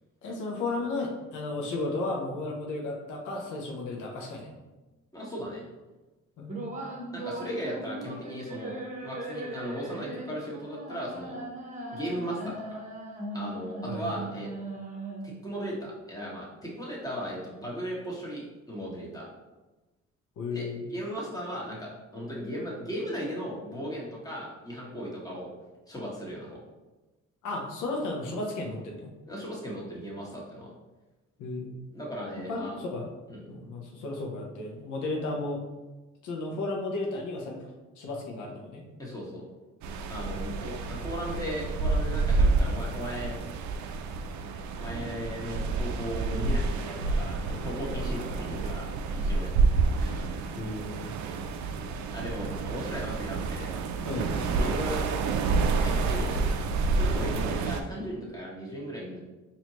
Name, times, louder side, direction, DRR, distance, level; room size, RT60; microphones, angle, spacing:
voice 1, 0.2-4.5 6.4-6.7 13.8-14.2 20.4-20.9 27.4-29.1 31.4-31.7 32.5-33.1 33.5-35.6 36.2-37.6 38.0-38.8 50.5-51.1 54.0-54.3, left 2 dB, 85° left, 0 dB, 0.8 m, -34 dB
voice 2, 5.1-5.6 7.1-8.7 9.0-11.4 11.9-12.8 13.3-14.5 15.2-19.3 20.5-25.5 25.9-26.6 29.3-30.7 31.9-32.8 33.3-33.4 39.0-39.4 40.1-43.4 44.8-48.9 49.1-49.5 50.0-50.2 51.3-51.4 52.1-53.7 54.0-55.0 55.8-56.6 56.9-59.2, equal, 10° left, -4 dB, 1.3 m, -37 dB
sound 1, 6.5-15.5, right 2 dB, 25° right, 0.9 m, -38 dB
sound 2, 39.8-57.8, right 3 dB, 70° right, 0.4 m, -29 dB
4.3 x 2.8 x 3.0 m, 1.1 s
cardioid pair, 90°, 30 cm